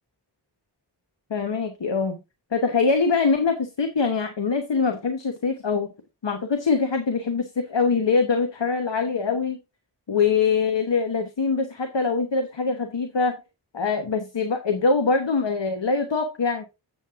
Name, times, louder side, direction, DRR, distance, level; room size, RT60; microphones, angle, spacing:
voice 1, 1.3-2.2 2.5-5.9 6.2-9.6 10.1-13.4 13.7-16.6, left 4 dB, 80° left, 1.2 m, -23 dB
8.2 x 7.3 x 3.6 m
wide cardioid pair, 70°, 43 cm